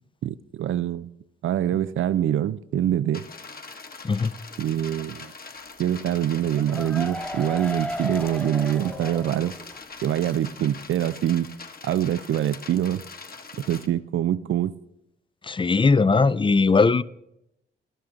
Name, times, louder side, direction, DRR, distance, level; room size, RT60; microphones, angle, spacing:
voice 1, 0.2-1.1 1.4-3.3 4.6-5.3 5.8-9.5 10.0-11.5 11.8-13.0 13.7-14.7, right 11 dB, 75° right, 0.5 m, -25 dB
sound 1, 3.1-13.9, left 4 dB, 45° left, 1.4 m, -42 dB
sound 2, 6.3-10.0 10.3-10.4 10.7-10.8, left 1 dB, 5° left, 1.1 m, -34 dB
voice 2, 15.5-17.0, left 4 dB, 25° left, 0.5 m, -19 dB
14.5 x 11.5 x 3.8 m
supercardioid pair, 50°, 21 cm